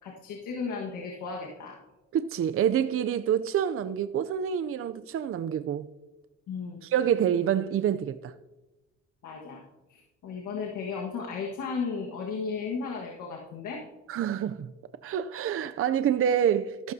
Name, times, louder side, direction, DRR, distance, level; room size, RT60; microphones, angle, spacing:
voice 1, 0.0-1.8 6.5-6.8 9.2-9.6 9.9-13.8, left 5 dB, 80° left, 1.6 m, -35 dB
voice 2, 2.1-5.9 6.9-8.3 14.1-14.7 15.0-16.9, right 9 dB, 45° right, 0.5 m, -27 dB
13.5 x 12.5 x 2.7 m
cardioid pair, 90°, 30 cm